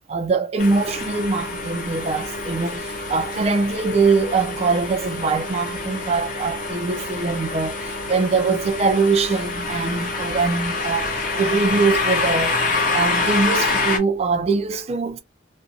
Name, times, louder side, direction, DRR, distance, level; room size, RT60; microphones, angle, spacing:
voice 1, 0.1-12.6 12.9-15.2, right 4 dB, 30° right, 0.3 m, -22 dB
sound 1, 0.6-14.0, left 3 dB, 45° left, 0.7 m, -26 dB
2.5 x 2.1 x 2.5 m
head